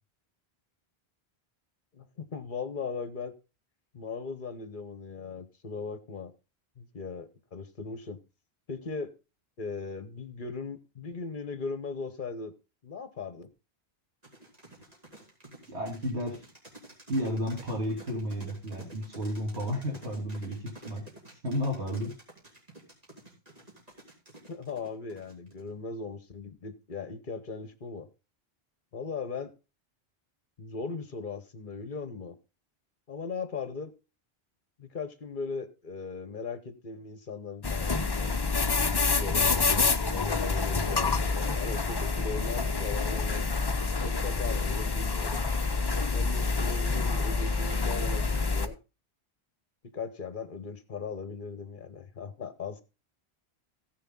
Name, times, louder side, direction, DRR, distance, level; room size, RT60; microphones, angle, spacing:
voice 1, 1.9-3.3 3.9-6.3 6.8-8.2 8.7-9.1 9.6-12.5 12.8-13.5 24.5-28.1 28.9-29.5 30.6-32.4 33.1-33.9 34.8-38.3 39.1-39.8 40.1-43.5 44.0-45.4 46.1-48.8 49.9-52.8, left 5 dB, 50° left, 1.3 m, -38 dB
sound 1, 14.2-25.7, right 1 dB, 35° right, 3.3 m, -50 dB
voice 2, 15.7-16.4 17.1-21.0 21.4-22.1, equal, 90° right, 3.2 m, -32 dB
sound 2, 37.6-48.7, left 4 dB, 25° left, 0.7 m, -27 dB
15.5 x 6.6 x 3.8 m
omnidirectional pair, 1.1 m